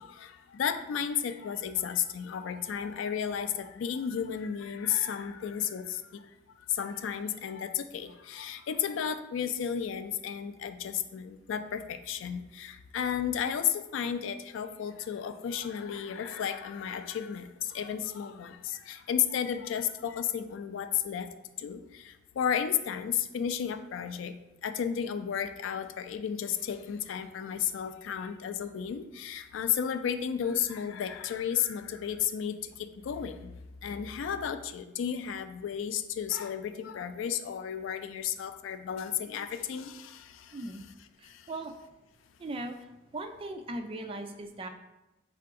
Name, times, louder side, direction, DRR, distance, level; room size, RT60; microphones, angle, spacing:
voice 1, 0.0-6.2 6.7-21.3 21.6-24.3 24.6-33.5 33.8-40.6 41.2-41.4, left 8 dB, 80° left, 10 dB, 0.3 m, -33 dB
voice 2, 40.5-40.8 41.2-41.7 42.4-42.8 43.1-44.7, right 2 dB, 30° right, 6 dB, 0.3 m, -38 dB
3.7 x 2.5 x 4.6 m, 0.98 s
head